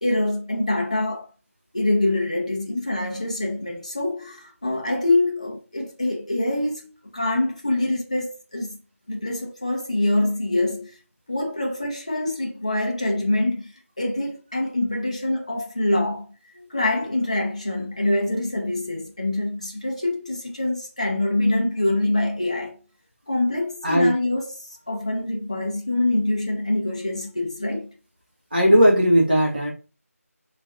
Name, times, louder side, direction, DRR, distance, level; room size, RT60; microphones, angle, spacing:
voice 1, 0.0-1.3 1.7-8.8 9.1-11.0 11.3-13.7 14.0-22.8 23.3-27.9, left 2 dB, 25° left, 0.6 m, -25 dB
voice 2, 28.5-29.7, equal, 35° right, 1.3 m, -17 dB
3.5 x 3.1 x 2.5 m
figure-of-eight pair, 180°, 8 cm